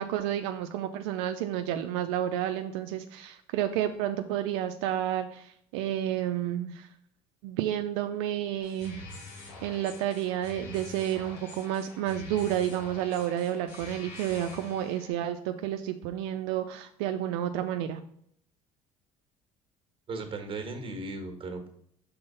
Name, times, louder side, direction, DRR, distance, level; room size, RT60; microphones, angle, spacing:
voice 1, 0.0-6.9 7.4-9.1 9.3-18.0, right 11 dB, 85° right, 7 dB, 0.4 m, -31 dB
sound 1, 8.6-15.1, left 3 dB, 85° left, 1.9 m, -46 dB
voice 2, 20.1-21.7, right 3 dB, 40° right, 6 dB, 1.4 m, -36 dB
5.4 x 3.8 x 5.5 m, 0.68 s
supercardioid pair, 85°, 14 cm